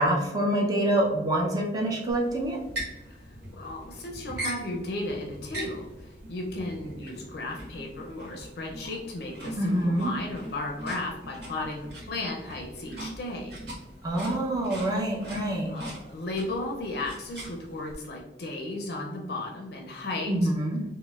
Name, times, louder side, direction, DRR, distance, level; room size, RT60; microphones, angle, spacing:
voice 1, 0.0-2.6 9.6-10.1 14.0-15.8 20.3-20.8, right 1 dB, 20° right, -2 dB, 0.5 m, -26 dB
sound 1, 2.1-17.9, right 1 dB, 65° right, 1.2 m, -41 dB
voice 2, 3.1-13.5 15.7-20.5, left 2 dB, 60° left, 0 dB, 0.5 m, -35 dB
4.0 x 2.0 x 2.3 m, 1.1 s
head